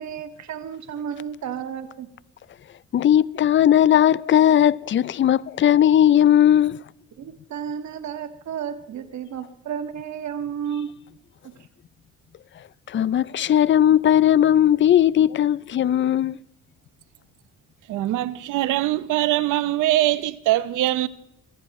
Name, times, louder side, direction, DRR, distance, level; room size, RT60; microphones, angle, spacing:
voice 1, 0.0-2.1 7.2-10.9 11.4-11.6, right 8 dB, 65° right, 1.8 m, -32 dB
voice 2, 2.9-6.8 12.9-16.4, left 10 dB, 40° left, 0.5 m, -17 dB
voice 3, 17.9-21.1, right 15 dB, 90° right, 0.9 m, -22 dB
22.5 x 15.5 x 3.1 m
cardioid pair, 90°, 30 cm